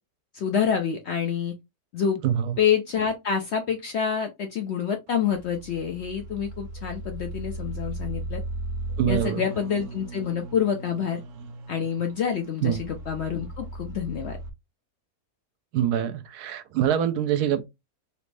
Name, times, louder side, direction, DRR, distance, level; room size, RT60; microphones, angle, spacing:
voice 1, 0.3-1.5 1.9-2.2 2.6-8.4 9.1-11.2 11.7-14.4, left 7 dB, 75° left, 0.6 m, -27 dB
voice 2, 2.2-2.6 9.0-9.4 12.6-12.8 15.7-17.6, right 10 dB, 80° right, 1.1 m, -24 dB
sound 1, 5.1-14.5, right 2 dB, 65° right, 0.9 m, -37 dB
3.0 x 2.5 x 3.2 m
omnidirectional pair, 1.7 m